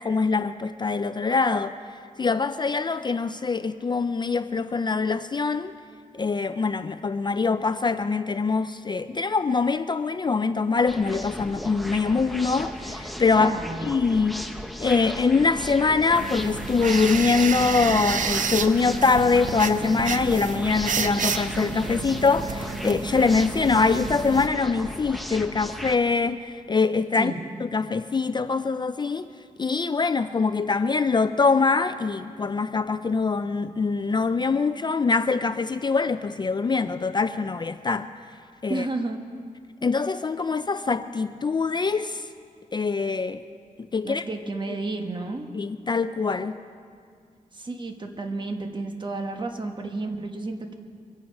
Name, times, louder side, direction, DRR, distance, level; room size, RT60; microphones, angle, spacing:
voice 1, 0.0-1.7 2.2-5.7 6.1-13.5 13.8-14.4 14.8-27.3 27.6-29.3 29.6-38.1 38.6-38.8 39.8-42.3 42.7-43.4 43.9-44.2 44.7-44.8 45.5-46.6, left 4 dB, 30° left, 11 dB, 0.4 m, -23 dB
sound 1, 10.9-26.0, equal, ahead, 0.7 m, -36 dB
voice 2, 13.4-13.9 27.2-27.4 38.7-39.2 44.0-45.5 47.5-50.7, right 2 dB, 35° right, 4 dB, 1.3 m, -31 dB
sound 2, 16.1-24.5, right 5 dB, 70° right, 0.7 m, -30 dB
23.5 x 8.9 x 5.4 m, 2.2 s
wide cardioid pair, 110°, 14 cm